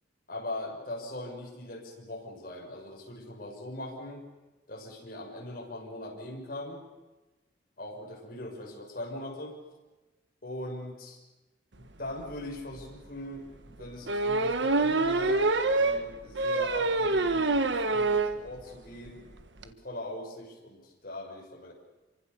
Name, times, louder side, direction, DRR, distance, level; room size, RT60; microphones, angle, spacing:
voice 1, 0.3-4.2 4.7-6.8 7.8-9.6 10.4-11.2 11.7-19.2 19.6-21.7, left 1 dB, 50° left, 0 dB, 6.9 m, -41 dB
sound 1, 12.3-12.4 12.8-12.9 14.1-18.4 18.7-18.8 19.1-19.2 19.4-19.6, right 3 dB, 75° right, 1.5 m, -26 dB
27.5 x 24.5 x 7.0 m, 1.1 s
head